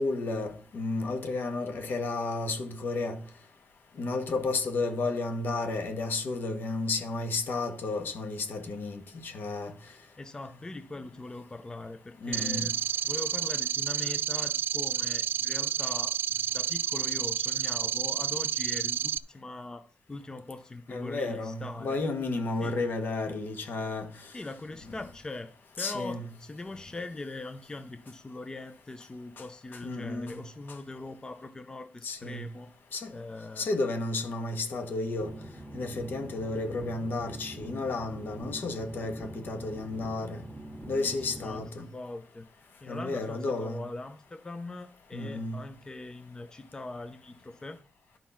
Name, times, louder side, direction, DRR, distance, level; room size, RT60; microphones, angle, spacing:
voice 1, 0.0-3.2 4.0-9.7 12.2-12.7 20.9-24.3 25.8-26.2 29.8-30.4 32.0-32.5 32.9-33.1 33.6-35.3 35.7-40.4 40.9-41.9 42.9-43.8 45.1-45.6, left 3 dB, 65° left, 1.8 m, -32 dB
voice 2, 9.9-19.8 20.1-22.0 22.6-22.8 24.3-25.5 25.8-32.7 33.1-33.7 41.0-47.8, left 2 dB, 20° left, 0.6 m, -41 dB
sound 1, 12.3-19.2, right 9 dB, 70° right, 0.4 m, -30 dB
sound 2, 35.2-41.6, right 1 dB, 10° right, 1.3 m, -44 dB
11.5 x 5.3 x 5.8 m
wide cardioid pair, 120°, 4 cm